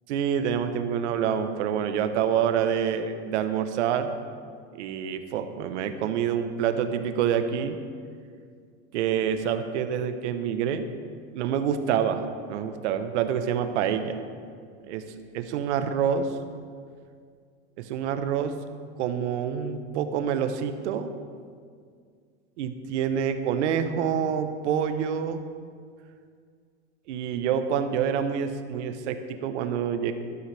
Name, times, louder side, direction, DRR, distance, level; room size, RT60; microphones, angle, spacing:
voice 1, 0.1-4.1 4.7-7.8 8.9-10.9 11.3-14.2 14.9-15.0 15.3-16.3 17.8-18.5 19.0-21.1 22.6-25.4 27.1-30.1, right 8 dB, 70° right, 8 dB, 1.1 m, -27 dB
13.0 x 12.5 x 3.4 m, 2.1 s
supercardioid pair, 155°, 37 cm